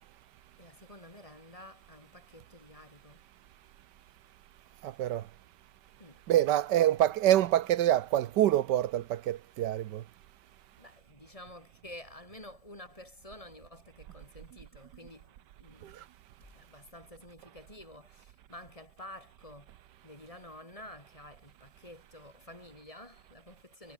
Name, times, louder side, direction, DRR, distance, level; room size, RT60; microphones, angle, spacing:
voice 1, 0.6-3.3 4.8-5.0 6.0-6.2 10.8-16.1 16.4-19.8 20.0-23.9, left 1 dB, 20° left, 3.2 m, -50 dB
voice 2, 4.8-5.2 6.3-10.0, right 12 dB, 80° right, 1.4 m, -26 dB
omnidirectional pair, 1.8 m